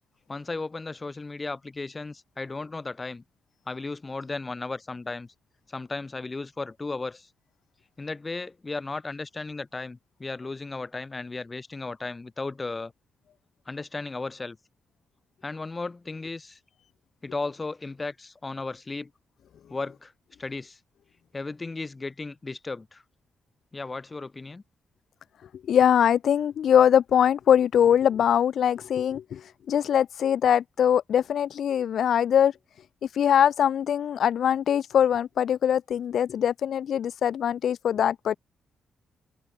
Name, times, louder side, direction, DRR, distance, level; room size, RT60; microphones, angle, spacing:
voice 1, 0.3-3.2 3.7-5.3 5.7-7.3 8.0-12.9 13.7-14.6 15.4-16.6 17.2-19.1 19.7-20.1 20.4-20.8 21.3-23.0 23.7-24.6, left 3 dB, 20° left, 1.0 m, -35 dB
voice 2, 25.7-32.5 33.1-38.4, left 9 dB, 60° left, 0.9 m, -22 dB
wide cardioid pair, 160°, 0 cm